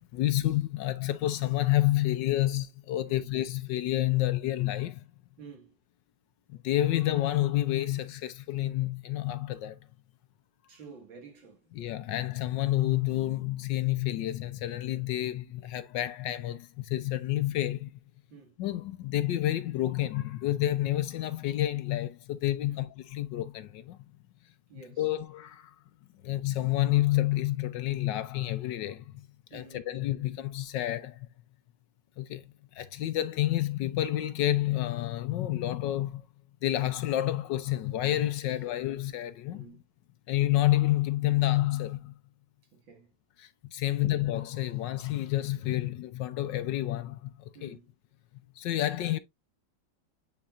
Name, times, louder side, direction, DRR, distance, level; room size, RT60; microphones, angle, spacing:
voice 1, 0.0-5.0 6.5-9.8 11.8-18.0 18.6-24.0 25.0-25.7 26.2-29.3 29.5-31.3 32.2-32.4 32.7-36.2 36.6-39.7 40.3-42.1 43.4-47.8 48.6-49.2, left 14 dB, 70° left, 1.2 m, -29 dB
voice 2, 5.4-5.7 10.7-11.7 18.3-18.6 22.6-22.9 24.7-25.1 29.5-30.0 38.5-38.7 39.5-39.8 42.7-43.1 43.9-44.2 47.5-47.9, right 5 dB, 75° right, 2.7 m, -51 dB
9.3 x 4.1 x 2.5 m
omnidirectional pair, 2.1 m